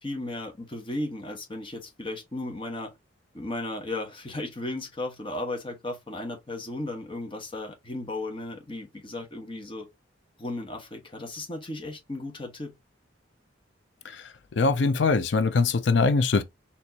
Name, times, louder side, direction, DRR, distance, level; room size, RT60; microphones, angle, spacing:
voice 1, 0.0-2.9 3.3-9.9 10.4-12.7, left 2 dB, 30° left, 1.2 m, -35 dB
voice 2, 14.6-16.4, left 4 dB, 65° left, 0.5 m, -22 dB
4.4 x 2.8 x 2.8 m
head